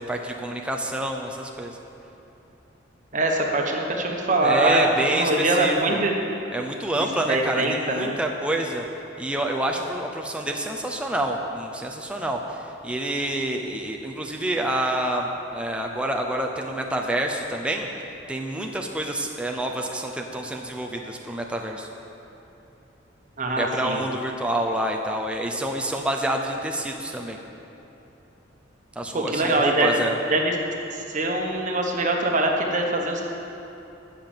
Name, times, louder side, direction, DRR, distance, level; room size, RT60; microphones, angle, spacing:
voice 1, 0.0-1.8 4.4-6.0 6.5-8.8 9.2-17.9 18.3-21.9 23.6-27.4 29.0-30.1, right 1 dB, 5° right, 1 dB, 0.6 m, -27 dB
voice 2, 3.1-6.1 7.3-8.2 23.4-24.0 29.1-30.0 30.3-30.5 30.9-33.3, right 2 dB, 40° right, 1 dB, 1.3 m, -23 dB
14.0 x 5.9 x 7.3 m, 3.0 s
head